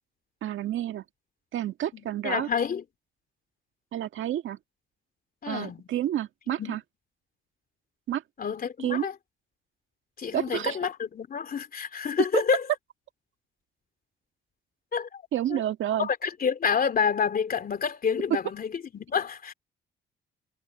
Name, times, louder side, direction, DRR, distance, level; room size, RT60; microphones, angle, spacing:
voice 1, 0.4-1.0 1.5-2.5 3.9-4.6 5.5-6.8 8.1-8.2 8.8-9.1 10.3-10.8 15.3-16.1, right 12 dB, 75° right, 2.1 m, -29 dB
voice 2, 1.9-2.8 5.4-5.8 6.6-6.8 8.4-9.1 10.2-12.6 14.9-15.2 15.5-15.6 16.0-19.5, left 6 dB, 45° left, 3.1 m, -28 dB
cardioid pair, 90°, 20 cm